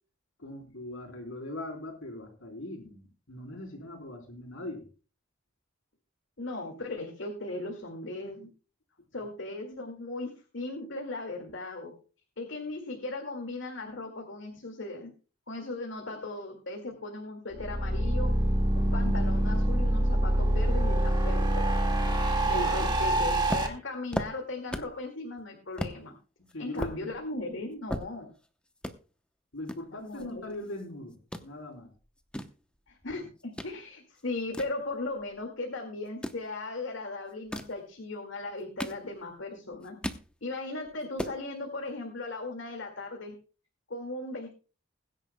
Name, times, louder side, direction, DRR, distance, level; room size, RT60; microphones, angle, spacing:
voice 1, 0.4-4.9 22.5-22.9 26.4-27.0 29.5-31.9, left 1 dB, 90° left, 2 dB, 3.6 m, -40 dB
voice 2, 6.4-8.5 9.1-11.9 12.4-15.1 15.5-18.3 18.7-21.9 22.4-26.1 26.6-28.3 29.9-30.4 32.9-39.9 40.4-43.3 43.9-44.5, left 2 dB, 70° left, 2 dB, 2.1 m, -37 dB
sound 1, 17.5-23.7, right 1 dB, 25° right, 1.8 m, -25 dB
sound 2, 23.5-25.0 25.4-25.5 25.8-26.0 26.5-28.5 28.8-29.0 29.7-30.9 31.1-31.5 32.0-33.7 34.1-35.4 36.1-36.5 37.3-37.8 38.4-39.4 39.7-40.3 40.7-40.8 41.0-41.4, equal, 5° left, 0.8 m, -37 dB
21.0 x 10.0 x 2.2 m, 0.36 s
head